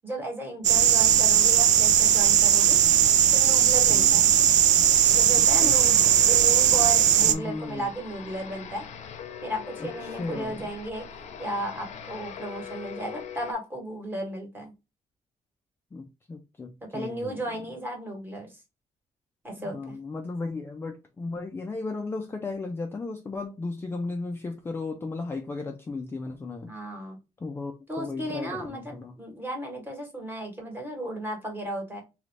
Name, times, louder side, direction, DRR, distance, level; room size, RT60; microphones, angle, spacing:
voice 1, 0.0-2.8 3.3-4.3 5.1-8.9 9.4-11.1 11.4-14.7 16.8-18.6 19.4-20.0 26.7-27.2 27.9-32.0, right 1 dB, 15° right, 1.2 m, -34 dB
sound 1, 0.6-7.3, right 10 dB, 70° right, 0.4 m, -19 dB
voice 2, 3.9-4.2 5.3-5.8 7.2-7.9 9.8-10.7 15.9-17.4 19.6-26.7 27.4-29.1, left 3 dB, 20° left, 0.4 m, -35 dB
sound 2, 4.8-13.5, left 7 dB, 65° left, 0.7 m, -41 dB
3.1 x 2.5 x 3.2 m
cardioid pair, 160°, 13 cm